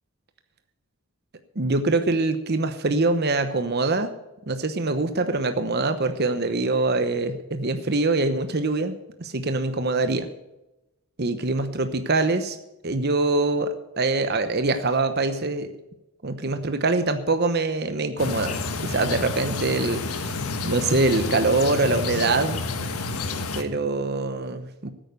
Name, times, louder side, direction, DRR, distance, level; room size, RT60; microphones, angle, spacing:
voice 1, 1.6-4.1 4.5-8.9 9.2-10.3 11.2-12.6 12.8-15.7 16.2-18.6 18.8-20.3 20.6-22.6 23.5-24.9, right 3 dB, 45° right, 9 dB, 0.9 m, -24 dB
sound 1, 18.2-23.6, left 3 dB, 85° left, 1.5 m, -29 dB
14.5 x 9.1 x 6.8 m, 0.93 s
head